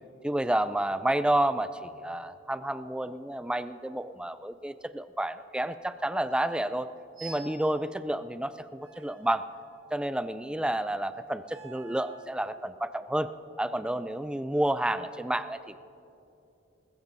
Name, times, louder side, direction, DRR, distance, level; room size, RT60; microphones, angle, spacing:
voice 1, 0.2-6.9 7.2-9.4 9.9-13.3 13.6-15.8, right 1 dB, 5° right, 12 dB, 0.3 m, -30 dB
sound 1, 7.1-7.6 8.8-10.0 11.4-12.3, right 4 dB, 50° right, 4.2 m, -48 dB
21.0 x 20.5 x 2.7 m, 2.8 s
head